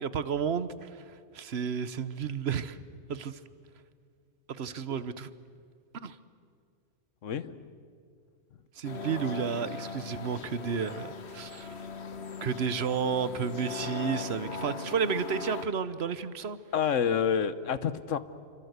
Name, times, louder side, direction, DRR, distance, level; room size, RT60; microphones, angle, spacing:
voice 1, 0.0-2.8 3.1-3.4 4.5-5.3 5.9-6.2 8.7-11.7 12.4-16.6, right 6 dB, 60° right, 15 dB, 1.2 m, -32 dB
voice 2, 7.2-7.7 16.7-18.2, left 7 dB, 85° left, 14 dB, 1.3 m, -28 dB
sound 1, 8.8-15.6, left 4 dB, 60° left, 1.6 m, -39 dB
28.0 x 25.0 x 8.1 m, 2.2 s
omnidirectional pair, 1.3 m